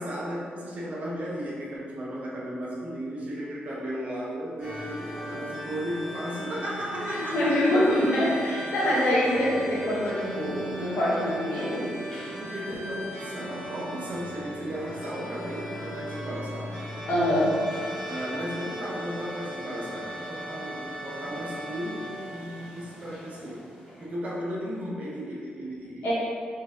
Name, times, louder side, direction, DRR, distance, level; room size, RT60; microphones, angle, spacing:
voice 1, 0.0-7.6 12.4-16.8 18.1-23.6 24.0-26.1, equal, 45° right, -5 dB, 0.7 m, -35 dB
sound 1, 4.6-24.0, equal, 10° left, 1.3 m, -38 dB
voice 2, 6.9-11.9 17.1-17.6 26.0-26.1, left 1 dB, 80° left, -9 dB, 1.4 m, -25 dB
3.8 x 3.5 x 2.6 m, 2.2 s
wide cardioid pair, 175°, 3 cm